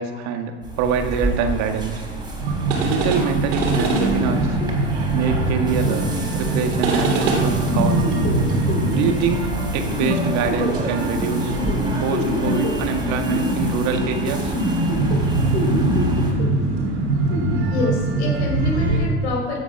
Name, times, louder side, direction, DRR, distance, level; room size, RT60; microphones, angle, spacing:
voice 1, 0.0-1.9 2.8-4.6 5.1-8.0 9.0-11.6 12.0-14.5, right 6 dB, 50° right, 5 dB, 1.8 m, -24 dB
sound 1, 0.6-16.3, right 1 dB, 10° right, 3.7 m, -30 dB
sound 2, 2.4-19.1, right 3 dB, 65° right, 3.2 m, -23 dB
sound 3, 3.8-17.5, left 2 dB, 30° left, 3.0 m, -28 dB
voice 2, 17.7-19.6, left 2 dB, 70° left, 0 dB, 4.6 m, -27 dB
15.0 x 8.0 x 6.0 m, 1.5 s
hypercardioid pair, 95°, 35 cm